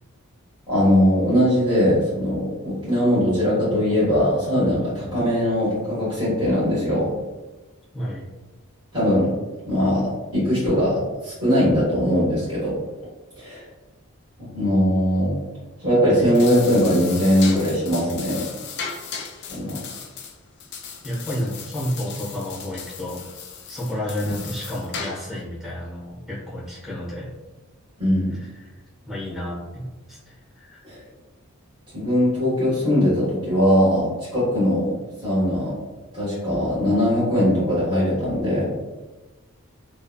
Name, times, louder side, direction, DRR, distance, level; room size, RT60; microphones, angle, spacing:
voice 1, 0.7-7.1 8.9-9.3 9.7-12.7 13.4-13.6 14.4-15.4 15.8-18.4 19.5-19.8 24.2-24.3 28.0-28.3 30.8-31.0 31.9-34.9 35.2-35.7 36.1-38.7, equal, 20° right, -12 dB, 1.5 m, -20 dB
voice 2, 7.9-8.3 21.0-23.2 23.7-27.3 28.3-30.8, left 1 dB, ahead, -9 dB, 1.1 m, -31 dB
sound 1, 16.2-25.4, left 6 dB, 50° left, 0.4 m, -36 dB
3.3 x 2.4 x 2.3 m, 1.2 s
head